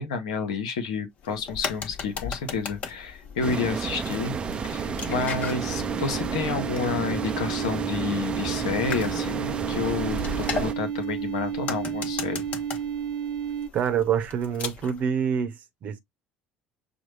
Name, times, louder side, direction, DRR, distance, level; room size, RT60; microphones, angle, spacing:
voice 1, 0.0-12.5, left 5 dB, 70° left, 1.0 m, -30 dB
sound 1, 1.2-15.0, left 5 dB, 45° left, 1.0 m, -38 dB
sound 2, 3.4-10.7, right 5 dB, 30° right, 0.6 m, -31 dB
sound 3, 3.5-13.7, right 8 dB, 75° right, 0.9 m, -33 dB
voice 2, 13.7-16.0, right 8 dB, 50° right, 0.9 m, -26 dB
6.1 x 2.2 x 3.1 m
figure-of-eight pair, 60°, 3 cm